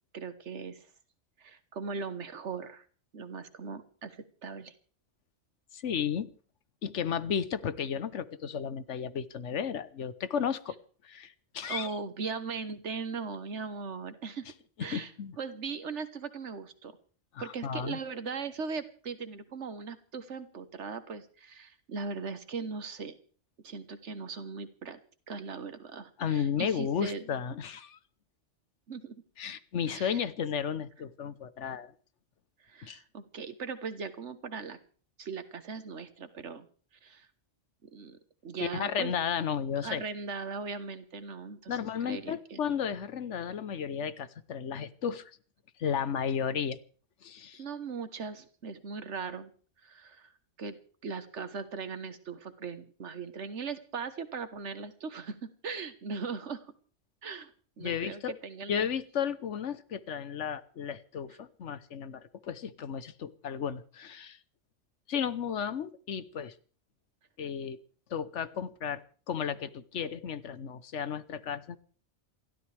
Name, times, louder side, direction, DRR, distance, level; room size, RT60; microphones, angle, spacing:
voice 1, 0.1-0.9 1.4-2.8 3.1-4.7 11.7-14.4 14.8-15.1 15.4-16.9 17.4-23.2 23.6-25.0 25.3-27.2 28.9-29.2 29.9-30.3 32.7-34.8 35.2-36.7 37.0-37.3 37.9-39.1 39.8-41.8 42.0-42.6 47.6-49.5 49.8-50.3 50.6-50.8 51.0-56.7 57.2-57.5 57.8-58.9, right 5 dB, 75° right, 11 dB, 1.5 m, -39 dB
voice 2, 5.7-6.3 6.8-10.8 11.0-11.9 14.8-15.4 17.3-18.0 26.2-28.0 29.4-31.9 32.8-33.0 38.6-40.0 41.7-45.4 45.8-46.8 47.2-47.6 57.8-58.3 58.7-64.4 65.1-66.5 67.4-67.8 68.1-69.0 69.3-71.8, left 7 dB, 80° left, 14 dB, 1.2 m, -33 dB
28.0 x 13.0 x 3.4 m, 0.42 s
omnidirectional pair, 1.2 m